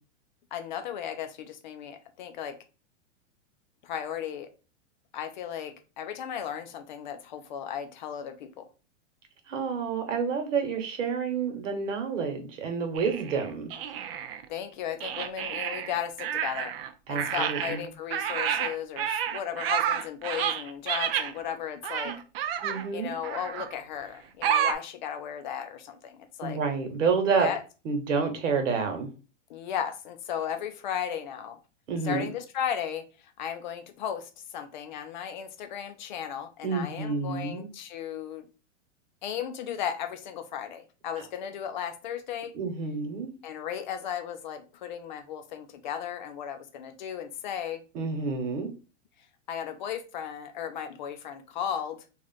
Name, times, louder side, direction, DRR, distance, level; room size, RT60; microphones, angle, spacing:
voice 1, 0.5-2.6 3.8-4.5 5.1-8.7 14.5-16.7 17.1-22.1 22.9-26.6 27.4-27.6 29.5-31.6 32.0-33.0 33.4-38.5 39.2-42.5 43.4-47.8 49.5-52.0, left 9 dB, 40° left, 7 dB, 0.4 m, -35 dB
voice 2, 9.5-13.7 17.1-17.9 22.0-22.1 22.6-23.1 26.4-27.5 27.8-29.1 31.9-32.3 36.6-37.7 42.5-43.3 47.9-48.7, right 5 dB, 80° right, 5 dB, 1.2 m, -29 dB
sound 1, 13.0-14.4 15.0-16.9 17.2-21.3 21.8-22.9 23.2-23.7 24.4-24.7, right 9 dB, 50° right, 0.5 m, -30 dB
3.1 x 2.5 x 4.0 m, 0.33 s
supercardioid pair, 155°, 37 cm